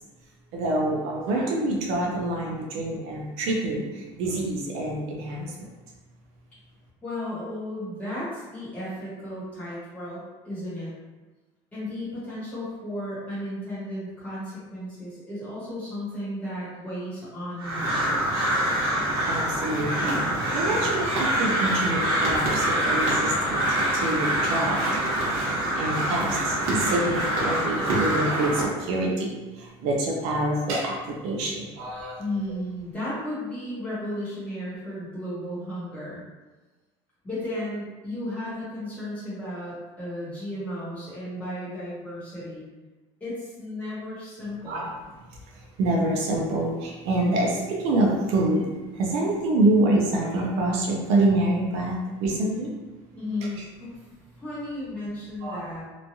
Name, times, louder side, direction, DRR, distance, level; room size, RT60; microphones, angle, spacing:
voice 1, 0.5-5.7 19.3-23.7 23.9-24.8 25.8-32.2 44.7-44.9 45.6-48.7 48.9-52.7 55.4-55.6, right 2 dB, 60° right, -1 dB, 0.4 m, -26 dB
voice 2, 7.0-10.9 11.7-18.2 32.2-36.2 37.2-42.6 43.2-44.9 53.1-54.0 54.4-55.8, left 1 dB, 10° left, -10 dB, 1.0 m, -34 dB
Crow, 17.6-28.6, right 1 dB, 80° right, 1.0 m, -25 dB
3.0 x 2.3 x 2.6 m, 1.2 s
cardioid pair, 180°, 12 cm